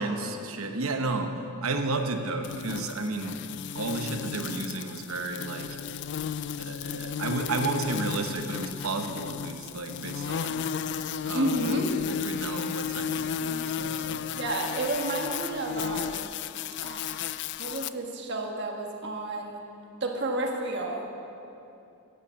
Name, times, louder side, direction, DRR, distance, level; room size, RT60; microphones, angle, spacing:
voice 1, 0.0-3.4 3.7-5.8 6.6-10.7 11.2-11.8 12.1-14.2, right 3 dB, 75° right, 5 dB, 1.0 m, -32 dB
sound 1, 2.4-17.9, left 8 dB, 55° left, 0.3 m, -34 dB
voice 2, 11.3-11.9 14.4-16.3 16.8-17.2 17.6-19.6 20.0-21.1, right 2 dB, 55° right, 1 dB, 1.4 m, -31 dB
11.0 x 8.8 x 7.3 m, 2.7 s
head